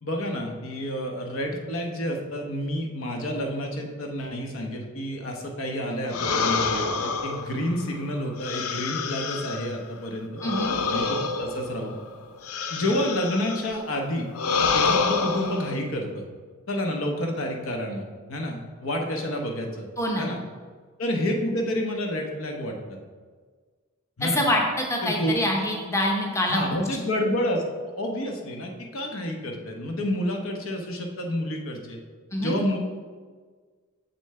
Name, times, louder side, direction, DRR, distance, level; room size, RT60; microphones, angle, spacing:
voice 1, 0.0-10.3 10.9-12.0 12.7-14.3 14.7-16.2 16.7-18.0 18.3-19.9 20.2-20.4 21.0-22.8 24.2-24.4 25.0-25.4 26.5-27.6 27.9-32.0 32.4-32.8, equal, 65° left, 2 dB, 1.0 m, -29 dB
sound 1, 6.1-9.8 10.4-13.7 14.3-15.8, left 4 dB, 80° left, 0.5 m, -27 dB
voice 2, 10.4-10.7 20.0-20.3 24.2-26.6 32.3-32.5, left 1 dB, 15° left, 0 dB, 0.8 m, -25 dB
7.1 x 6.9 x 3.2 m, 1.5 s
head